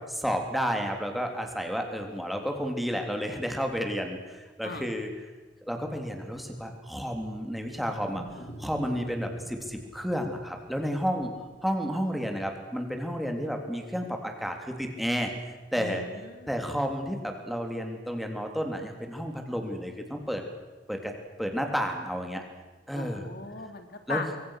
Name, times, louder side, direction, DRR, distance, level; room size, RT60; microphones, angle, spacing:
voice 1, 0.2-5.1 5.7-8.2 8.6-11.3 11.6-15.3 15.7-16.0 16.5-20.4 20.9-21.1 21.4-22.4 22.9-23.3 24.1-24.2, equal, ahead, 3 dB, 3.3 m, -31 dB
Wild animals, 7.4-12.0, right 1 dB, 40° left, 5.3 m, -47 dB
voice 2, 15.7-16.6 22.9-24.3, left 3 dB, 60° left, 7 dB, 2.6 m, -38 dB
25.0 x 23.5 x 6.6 m, 1.2 s
head